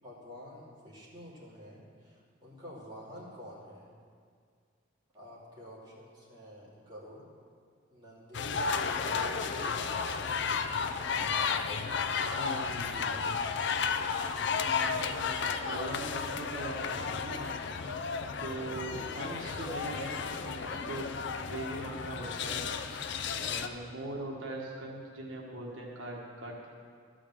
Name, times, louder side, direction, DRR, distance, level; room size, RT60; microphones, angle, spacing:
voice 1, 0.0-3.9 5.1-7.2 7.9-8.5 9.0-10.6 18.8-19.4, equal, 20° right, -8 dB, 2.8 m, -49 dB
sound 1, 8.3-23.7, left 5 dB, 60° left, 0.5 m, -33 dB
voice 2, 12.1-13.1 14.6-15.3 15.6-17.5 18.4-21.1 21.4-22.7 23.3-26.7, right 1 dB, 80° right, -2 dB, 1.4 m, -41 dB
13.0 x 5.1 x 7.3 m, 2.1 s
head